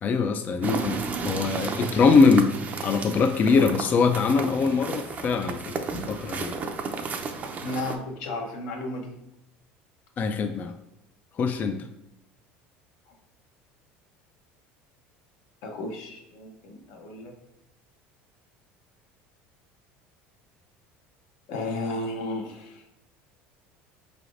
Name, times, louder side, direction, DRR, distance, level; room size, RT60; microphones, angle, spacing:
voice 1, 0.0-2.5 2.8-5.8 6.1-6.6 10.2-10.7 11.4-11.8, left 4 dB, 35° left, 7 dB, 0.3 m, -22 dB
sound 1, 0.6-8.0, right 4 dB, 30° right, 0.5 m, -33 dB
voice 2, 7.6-9.1 15.6-17.3 21.5-22.8, left 2 dB, 70° left, 2 dB, 0.8 m, -33 dB
4.9 x 3.3 x 2.5 m, 0.86 s
supercardioid pair, 120°, 5 cm